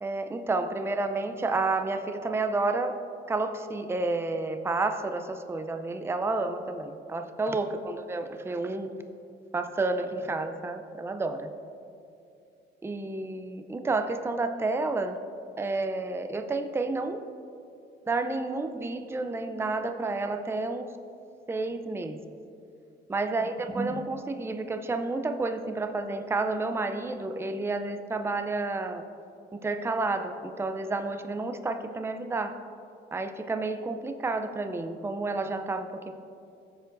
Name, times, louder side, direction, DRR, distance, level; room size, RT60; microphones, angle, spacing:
voice 1, 0.0-3.0 3.3-8.9 9.5-11.5 12.8-15.2 15.6-17.2 18.1-20.9 21.5-22.2 23.1-29.0 29.5-32.6 33.1-36.1, right 3 dB, 10° right, 7 dB, 0.5 m, -30 dB
15.0 x 7.1 x 2.6 m, 2.6 s
cardioid pair, 90°, 20 cm